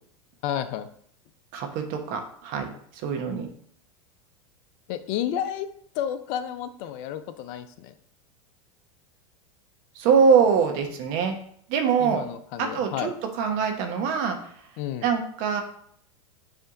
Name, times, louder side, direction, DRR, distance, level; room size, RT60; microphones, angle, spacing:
voice 1, 0.4-0.9 4.9-5.7 5.9-7.9 12.0-13.1 14.8-15.1, left 10 dB, 50° left, 11 dB, 0.6 m, -31 dB
voice 2, 1.5-2.7 2.9-3.5 9.9-11.4 11.7-12.2 12.7-13.1 13.4-14.4 15.0-15.6, right 6 dB, 50° right, 4 dB, 1.3 m, -23 dB
7.7 x 3.4 x 3.9 m, 0.63 s
hypercardioid pair, 95°, 18 cm